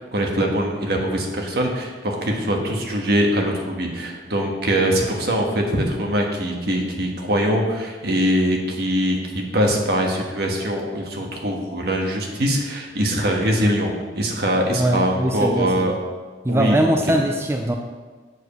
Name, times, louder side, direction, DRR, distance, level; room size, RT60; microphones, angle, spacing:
voice 1, 0.1-16.0 16.5-17.2, equal, 60° right, 1 dB, 1.5 m, -22 dB
voice 2, 14.7-15.9 16.4-17.7, right 1 dB, 15° right, 3 dB, 0.5 m, -21 dB
8.0 x 4.9 x 6.7 m, 1.4 s
head